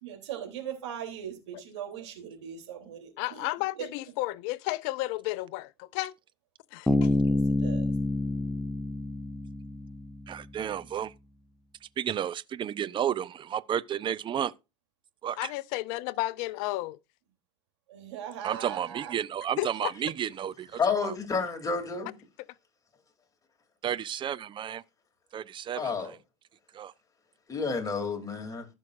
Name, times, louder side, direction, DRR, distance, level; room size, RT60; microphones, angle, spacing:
voice 1, 0.0-3.5 3.8-3.9 7.2-7.9 17.9-19.1, right 9 dB, 75° right, 3.3 m, -39 dB
voice 2, 3.2-6.1 6.7-7.1 15.4-17.0 19.6-19.9, left 19 dB, 60° left, 0.6 m, -32 dB
Bass guitar, 6.9-10.4, left 2 dB, 5° left, 0.7 m, -28 dB
voice 3, 10.3-11.1 12.0-14.5 15.2-15.5 18.4-21.1 23.8-24.8 25.3-26.1 26.7-26.9, right 9 dB, 35° right, 0.7 m, -32 dB
voice 4, 20.8-22.1 25.8-26.2 27.5-28.7, left 5 dB, 25° left, 3.0 m, -30 dB
15.0 x 6.4 x 2.6 m
hypercardioid pair, 80°, 15 cm